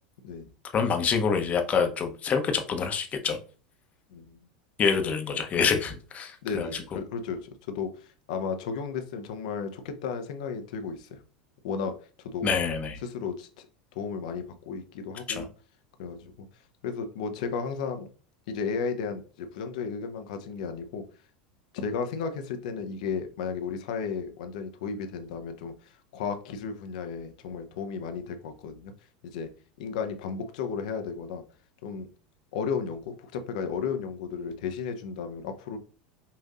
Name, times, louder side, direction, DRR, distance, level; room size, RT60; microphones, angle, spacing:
voice 1, 0.7-3.4 4.8-6.8 12.4-13.0 15.3-15.4, left 6 dB, 35° left, 0.8 m, -26 dB
voice 2, 6.4-11.2 11.6-12.5 13.0-13.7 13.9-15.5 16.0-16.5 16.8-18.1 18.5-21.0 21.7-28.9 29.2-29.5 29.8-31.4 31.8-32.1 32.5-35.8, left 5 dB, 65° left, 0.6 m, -34 dB
5.5 x 2.6 x 2.4 m
hypercardioid pair, 85°, 4 cm